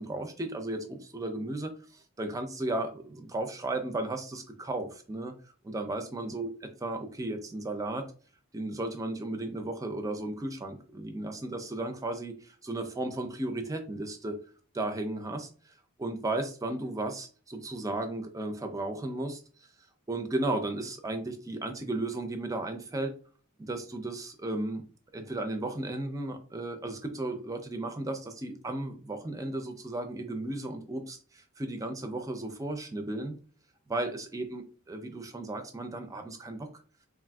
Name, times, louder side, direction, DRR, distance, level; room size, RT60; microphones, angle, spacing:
voice 1, 0.0-5.3 5.6-8.1 8.5-14.4 14.7-15.5 16.0-19.4 20.1-23.1 23.6-24.8 25.1-33.3 33.9-34.6 34.9-36.7, right 2 dB, 15° right, 6 dB, 0.3 m, -34 dB
3.3 x 2.4 x 2.2 m, 0.40 s
head